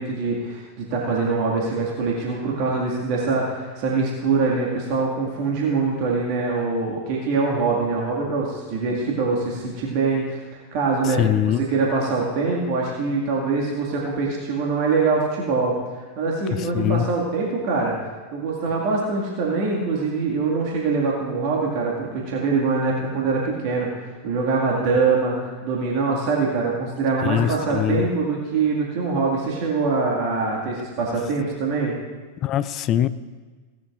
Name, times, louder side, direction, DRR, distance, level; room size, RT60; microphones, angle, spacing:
voice 1, 0.0-11.2 11.6-15.8 16.2-18.0 18.3-32.0, right 4 dB, 45° right, -2 dB, 2.0 m, -23 dB
voice 2, 11.0-11.6 16.5-17.1 27.2-28.1 32.4-33.1, left 11 dB, 35° left, 14 dB, 0.5 m, -22 dB
17.0 x 12.0 x 2.5 m, 1.4 s
figure-of-eight pair, 90°, 0 cm